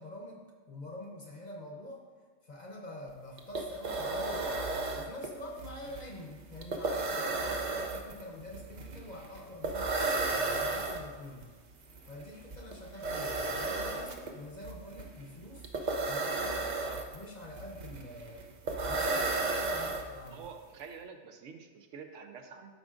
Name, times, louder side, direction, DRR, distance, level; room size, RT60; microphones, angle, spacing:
voice 1, 0.0-2.0 2.4-4.6 5.0-11.5 12.0-18.5 18.9-20.4, left 1 dB, 40° left, 0 dB, 0.8 m, -46 dB
sound 1, 3.1-3.2 3.4-20.5, right 3 dB, 50° right, 0.6 m, -34 dB
voice 2, 20.2-22.7, right 5 dB, 75° right, 5 dB, 1.0 m, -47 dB
11.5 x 4.8 x 2.5 m, 1.5 s
omnidirectional pair, 1.3 m